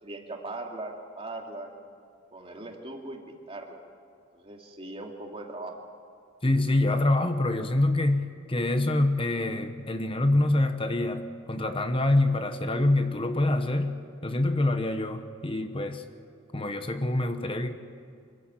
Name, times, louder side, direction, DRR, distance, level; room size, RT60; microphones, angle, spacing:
voice 1, 0.0-1.7 2.3-3.8 4.3-5.8, right 2 dB, 30° right, 1 dB, 2.5 m, -39 dB
voice 2, 6.4-16.0 16.5-17.7, left 2 dB, 25° left, 8 dB, 1.0 m, -26 dB
25.5 x 15.0 x 9.2 m, 2.3 s
head